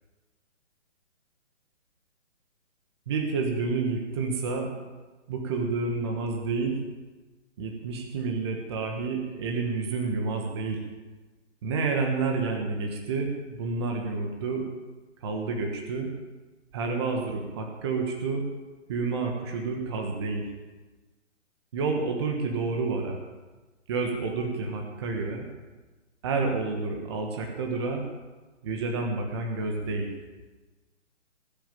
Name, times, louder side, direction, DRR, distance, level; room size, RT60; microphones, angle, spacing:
voice 1, 3.1-4.7 5.3-6.8 7.6-10.8 11.6-14.7 15.2-16.1 16.7-18.4 18.9-20.4 21.7-23.2 23.9-25.4 26.2-28.0 28.6-30.1, right 4 dB, 20° right, 2 dB, 1.4 m, -29 dB
19.5 x 7.3 x 9.0 m, 1.2 s
hypercardioid pair, 170°, 37 cm